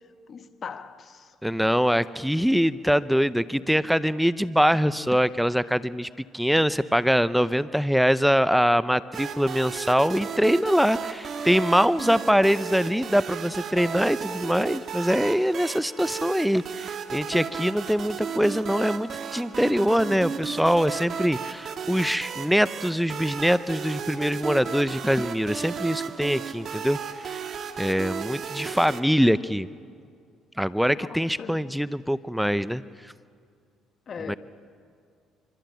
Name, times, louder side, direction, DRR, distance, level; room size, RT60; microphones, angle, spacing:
voice 1, 0.3-1.3 31.0-31.7 34.1-34.4, left 6 dB, 45° left, 1.5 m, -39 dB
voice 2, 1.4-27.0 27.2-27.4 27.8-29.7 30.6-32.8 34.3-34.4, equal, ahead, 0.6 m, -23 dB
sound 1, 9.1-29.0, right 6 dB, 50° right, 1.8 m, -34 dB
25.0 x 24.0 x 9.2 m
supercardioid pair, 85°, 0 cm